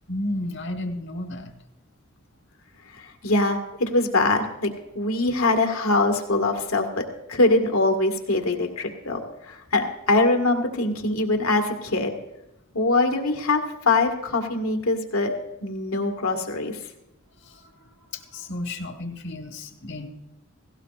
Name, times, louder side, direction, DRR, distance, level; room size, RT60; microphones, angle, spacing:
voice 1, 0.1-1.5 17.4-20.1, left 1 dB, 55° left, 4 dB, 1.3 m, -33 dB
voice 2, 3.0-4.7 5.0-12.2 12.7-15.3 15.6-16.8, left 2 dB, 85° left, 4 dB, 1.8 m, -23 dB
17.0 x 17.0 x 2.5 m, 0.94 s
head